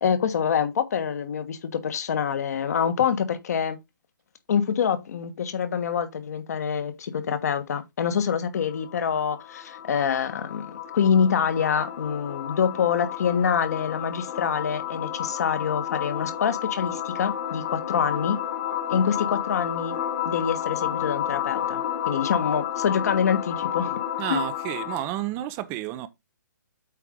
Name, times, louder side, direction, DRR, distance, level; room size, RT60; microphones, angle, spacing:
voice 1, 0.0-3.8 4.5-18.4 18.9-19.9 20.2-21.8 22.1-24.0 24.3-24.4, left 7 dB, 55° left, 1.4 m, -26 dB
sound 1, 8.5-25.2, left 10 dB, 35° left, 1.5 m, -31 dB
voice 2, 24.2-26.1, right 14 dB, 25° right, 0.6 m, -31 dB
8.3 x 4.7 x 3.6 m
figure-of-eight pair, 135°, 10 cm